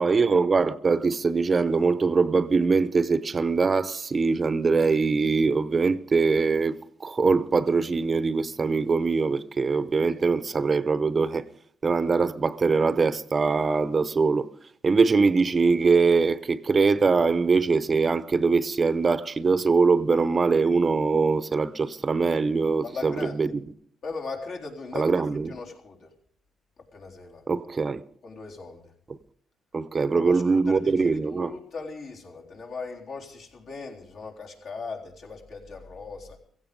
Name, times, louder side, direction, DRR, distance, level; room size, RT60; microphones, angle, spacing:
voice 1, 0.0-11.4 11.8-14.5 14.8-23.5 24.9-25.5 27.5-28.0 29.7-31.5, right 4 dB, 35° right, 0.7 m, -22 dB
voice 2, 22.8-23.5 24.0-26.1 26.9-27.5 28.2-28.9 30.1-36.4, left 4 dB, 65° left, 3.9 m, -38 dB
16.0 x 15.5 x 5.2 m
cardioid pair, 90°, 0 cm